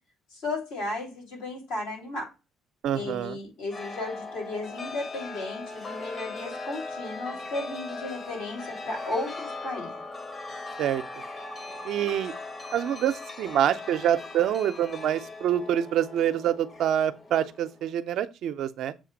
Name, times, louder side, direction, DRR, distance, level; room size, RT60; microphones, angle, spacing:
voice 1, 0.3-2.3 2.9-9.9, left 2 dB, 90° left, 2.9 m, -34 dB
voice 2, 2.8-3.4 10.8-11.0 11.8-12.3 12.7-18.9, right 10 dB, 70° right, 0.5 m, -26 dB
Chime, 3.7-17.9, left 3 dB, 35° left, 1.0 m, -39 dB
7.4 x 2.5 x 4.9 m
supercardioid pair, 70°, 0 cm